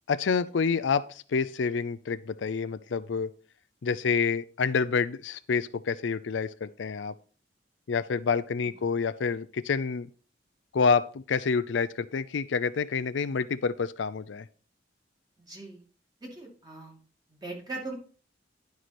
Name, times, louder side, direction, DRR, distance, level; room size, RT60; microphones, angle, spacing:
voice 1, 0.1-3.3 3.8-7.1 7.9-10.1 10.7-14.5, left 5 dB, 80° left, 14 dB, 0.5 m, -28 dB
voice 2, 15.5-15.8 16.3-17.0 17.3-17.9, right 3 dB, 20° right, -1 dB, 2.3 m, -40 dB
10.5 x 4.7 x 4.2 m, 0.41 s
head